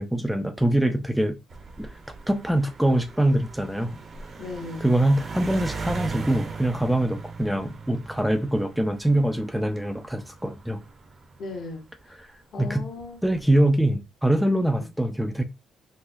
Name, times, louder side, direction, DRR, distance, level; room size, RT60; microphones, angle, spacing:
voice 1, 0.0-1.4 1.8-1.9 2.3-3.9 4.8-10.8 12.2-12.3 12.6-12.8 13.2-15.4, right 1 dB, 5° right, 0.4 m, -24 dB
sound 1, 1.5-12.2 13.0-13.4, right 4 dB, 55° right, 0.8 m, -39 dB
voice 2, 4.4-4.9 11.4-12.1 12.5-13.2 14.8-14.9, left 3 dB, 65° left, 1.2 m, -37 dB
4.2 x 2.1 x 2.6 m
cardioid pair, 90°, 0 cm